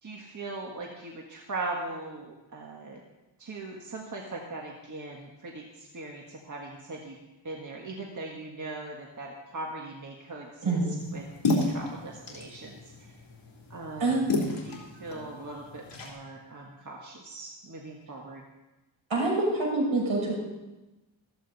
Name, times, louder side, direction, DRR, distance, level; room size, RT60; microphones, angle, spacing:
voice 1, 0.0-3.0 3.4-7.1 7.4-10.8 11.1-12.8 13.7-14.3 14.6-18.4, right 2 dB, 40° right, -1 dB, 1.7 m, -40 dB
sound 1, 11.0-16.1, left 2 dB, 65° left, 3.5 m, -33 dB
voice 2, 19.1-20.3, right 2 dB, 75° right, -4 dB, 6.6 m, -26 dB
15.0 x 14.5 x 4.2 m, 1.0 s
wide cardioid pair, 130°, 47 cm